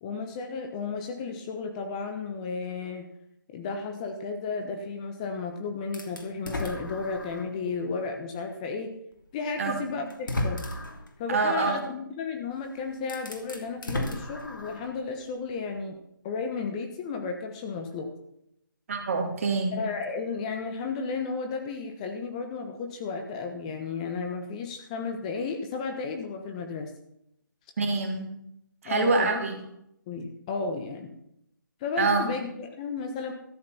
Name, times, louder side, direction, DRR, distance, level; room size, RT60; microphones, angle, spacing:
voice 1, 0.0-3.1 3.5-8.9 9.3-10.7 11.2-16.0 16.2-18.1 19.7-26.9 28.8-29.4 30.1-31.1 31.8-33.3, left 4 dB, 20° left, 4 dB, 1.2 m, -33 dB
sound 1, 5.9-7.6 8.1-8.2 9.4-9.5 10.1-11.1 12.5-12.6 13.0-15.0, left 1 dB, 70° left, 3.0 m, -34 dB
voice 2, 11.3-11.8 18.9-19.8 27.8-28.3 28.8-29.6 32.0-32.3, right 4 dB, 40° right, 4 dB, 2.9 m, -25 dB
13.5 x 9.5 x 5.8 m, 0.76 s
figure-of-eight pair, 155°, 11 cm